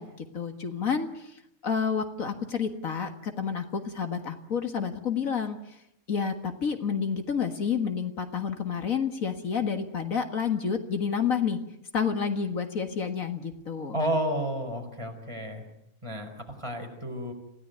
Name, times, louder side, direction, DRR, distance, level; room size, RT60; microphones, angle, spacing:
voice 1, 0.0-5.8 6.1-11.6 11.9-14.0, left 6 dB, 70° left, 7 dB, 2.1 m, -29 dB
voice 2, 13.9-15.6 16.0-17.3, equal, 20° right, 3 dB, 4.9 m, -31 dB
27.0 x 17.0 x 9.4 m, 0.80 s
omnidirectional pair, 1.5 m